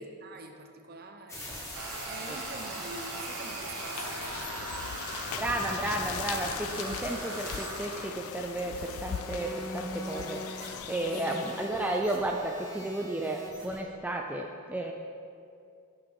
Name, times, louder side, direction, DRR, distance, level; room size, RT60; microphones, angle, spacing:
voice 1, 0.0-1.6 2.1-5.4 11.3-11.4, right 3 dB, 45° right, 5 dB, 0.8 m, -47 dB
sound 1, 1.3-13.8, equal, 15° left, 1.8 m, -43 dB
sound 2, 1.7-9.7, right 2 dB, 85° right, 1.4 m, -40 dB
sound 3, 3.6-12.0, left 9 dB, 75° left, 0.3 m, -40 dB
voice 2, 5.3-10.4 10.9-14.9, right 1 dB, 5° right, 1 dB, 0.4 m, -33 dB
10.0 x 5.8 x 5.3 m, 2.5 s
head